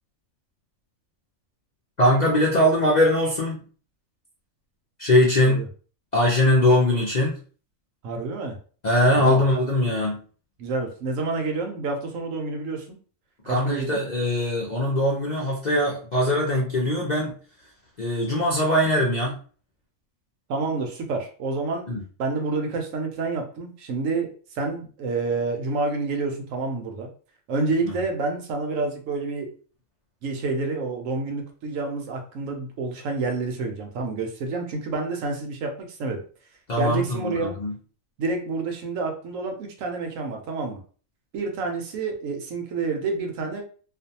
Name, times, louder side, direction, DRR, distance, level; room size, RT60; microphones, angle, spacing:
voice 1, 2.0-3.7 5.0-5.6 6.1-7.4 8.8-10.2 13.5-17.3 18.0-19.4 21.9-22.0 36.7-37.7, left 1 dB, 50° left, -4 dB, 0.5 m, -21 dB
voice 2, 8.0-8.6 9.1-9.4 10.6-13.0 13.5-14.0 20.5-21.9 22.2-27.1 27.5-29.5 30.2-36.2 36.8-37.5 38.2-40.8 41.3-43.6, right 3 dB, 75° right, 3 dB, 1.0 m, -28 dB
2.5 x 2.2 x 2.7 m, 0.40 s
omnidirectional pair, 1.4 m